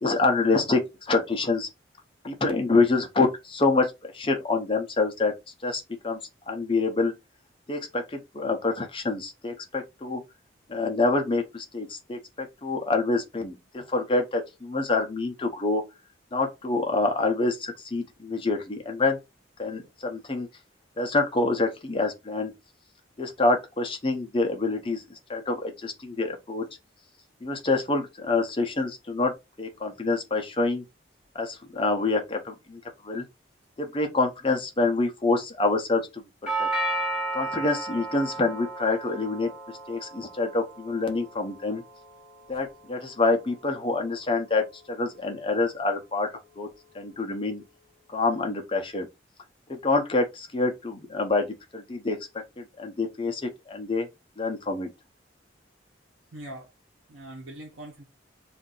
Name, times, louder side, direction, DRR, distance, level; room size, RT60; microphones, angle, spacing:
voice 1, 0.0-1.7 2.2-5.3 5.6-6.2 6.5-7.1 7.7-10.2 10.7-15.8 16.3-19.2 19.6-20.5 21.0-22.5 23.2-25.0 25.3-26.6 27.4-29.3 29.6-30.8 31.3-32.8 33.0-33.2 33.8-36.7 37.3-39.5 39.9-41.8 42.5-46.3 46.6-46.7 46.9-47.6 48.1-49.1 49.8-51.5 51.7-52.2 52.6-54.1 54.4-54.9, left 3 dB, 25° left, 0.6 m, -26 dB
Doorbell, 36.5-44.5, right 2 dB, 5° right, 1.2 m, -35 dB
voice 2, 56.3-56.7 57.1-58.0, right 1 dB, 90° right, 1.0 m, -42 dB
2.6 x 2.5 x 3.8 m
head